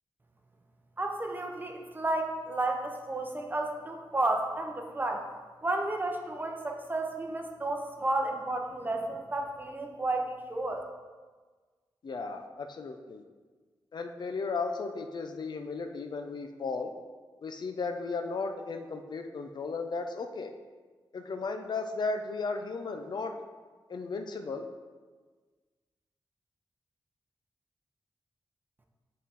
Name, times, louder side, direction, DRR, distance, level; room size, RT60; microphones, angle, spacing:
voice 1, 1.0-5.3 5.6-10.8, right 2 dB, 20° right, 3 dB, 0.7 m, -32 dB
voice 2, 12.0-13.2 13.9-16.9 17.4-20.5 21.1-23.3 23.9-24.7, left 4 dB, 60° left, 5 dB, 0.5 m, -35 dB
8.3 x 4.2 x 3.9 m, 1.4 s
wide cardioid pair, 155°, 8 cm